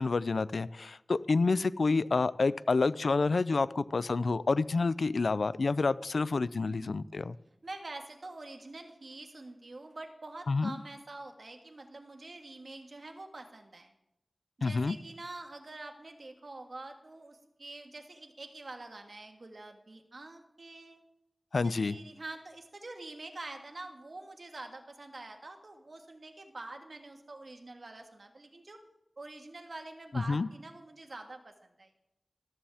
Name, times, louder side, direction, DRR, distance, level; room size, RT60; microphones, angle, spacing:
voice 1, 0.0-7.4 10.5-10.7 14.6-15.0 21.5-22.0 30.1-30.5, left 3 dB, 80° left, 17 dB, 0.4 m, -28 dB
voice 2, 6.6-7.0 7.6-13.9 14.6-21.0 21.6-28.8 29.2-31.9, right 2 dB, 60° right, 5 dB, 1.6 m, -46 dB
14.5 x 12.5 x 3.5 m, 0.87 s
wide cardioid pair, 75°, 0 cm